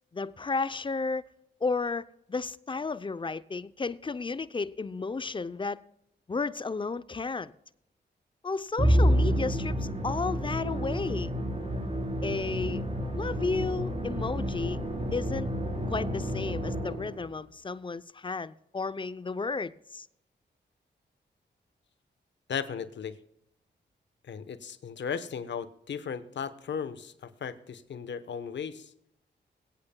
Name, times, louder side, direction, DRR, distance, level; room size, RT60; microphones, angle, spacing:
voice 1, 0.1-1.2 1.6-5.8 6.3-7.5 8.4-11.3 12.2-12.8 13.2-14.8 15.1-15.5 15.9-20.1, left 4 dB, 25° left, 0.6 m, -33 dB
Musical instrument, 8.8-17.3, equal, 35° right, 4.2 m, -29 dB
voice 2, 22.5-23.2 24.2-28.9, left 7 dB, 70° left, 1.0 m, -36 dB
22.5 x 8.8 x 2.3 m
cardioid pair, 60°, 19 cm